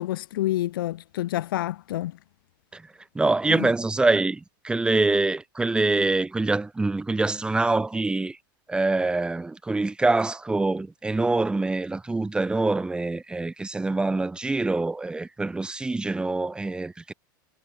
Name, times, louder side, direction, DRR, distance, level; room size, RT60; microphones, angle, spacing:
voice 1, 0.0-2.2 3.5-3.7, left 14 dB, 80° left, 5.6 m, -28 dB
voice 2, 3.1-8.4 8.7-17.1, right 3 dB, 10° right, 3.6 m, -25 dB
supercardioid pair, 140°, 11 cm